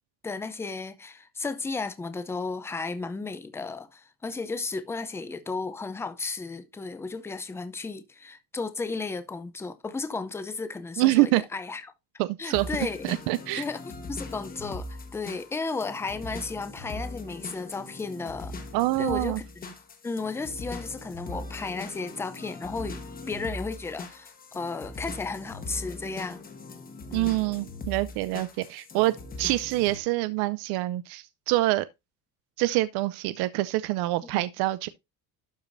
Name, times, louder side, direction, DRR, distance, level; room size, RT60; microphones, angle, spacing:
voice 1, 0.2-11.8 12.4-13.1 13.5-13.8 14.1-18.6 19.0-19.8 20.0-23.0 23.3-26.4 27.1-27.4 34.3-34.4, left 4 dB, 5° left, 0.5 m, -34 dB
voice 2, 11.0-11.4 12.2-12.7 13.0-13.6 18.7-19.4 27.1-31.9 32.6-34.9, right 18 dB, 70° right, 0.6 m, -26 dB
sound 1, 12.5-30.0, left 2 dB, 20° left, 1.3 m, -40 dB
12.0 x 4.9 x 2.6 m
cardioid pair, 175°, 39 cm